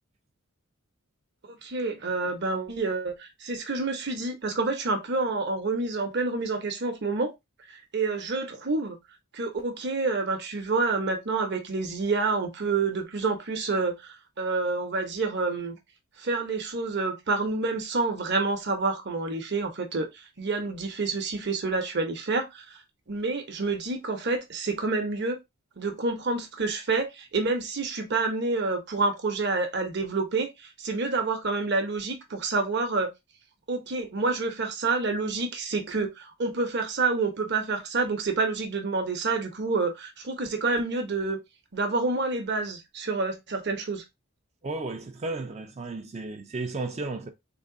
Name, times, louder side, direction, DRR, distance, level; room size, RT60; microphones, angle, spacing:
voice 1, 1.6-7.3 7.9-9.0 9.3-15.8 16.2-20.1 20.4-22.6 23.1-25.4 25.8-30.5 30.8-33.1 33.7-41.4 41.7-44.0, right 3 dB, 50° right, 0.9 m, -28 dB
voice 2, 44.6-47.3, right 3 dB, 30° right, 0.4 m, -33 dB
3.6 x 2.2 x 3.7 m
head